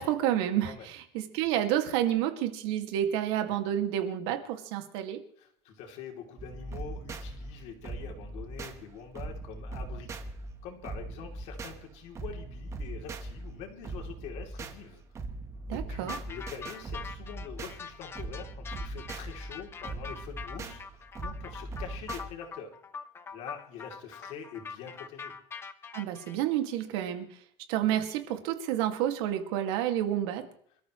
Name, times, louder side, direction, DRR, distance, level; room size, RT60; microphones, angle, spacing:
voice 1, 0.0-5.2 15.7-16.2 25.9-27.4 27.7-30.4, right 11 dB, 85° right, 5 dB, 2.2 m, -29 dB
voice 2, 5.4-10.2 10.6-15.0 15.7-22.7 23.3-25.3, left 7 dB, 55° left, 3 dB, 3.2 m, -45 dB
sound 1, 6.4-22.3, right 2 dB, 20° right, 1.3 m, -41 dB
sound 2, 16.1-26.4, left 5 dB, 15° left, 0.8 m, -43 dB
27.5 x 13.5 x 3.2 m, 0.64 s
cardioid pair, 170°, 14 cm